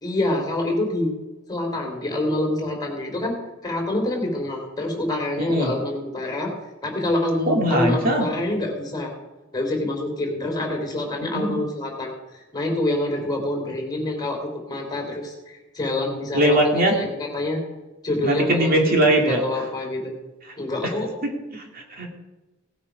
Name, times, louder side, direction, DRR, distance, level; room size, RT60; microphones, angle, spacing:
voice 1, 0.0-1.1 1.5-3.4 3.6-6.5 6.8-9.1 9.5-17.6 18.0-20.1 20.6-21.1, left 1 dB, 20° left, 1 dB, 3.4 m, -26 dB
voice 2, 5.4-5.7 7.5-8.2 11.2-11.5 16.3-16.9 18.2-19.4 21.2-22.1, right 1 dB, 45° right, 1 dB, 2.3 m, -21 dB
18.0 x 8.7 x 5.3 m, 1.1 s
head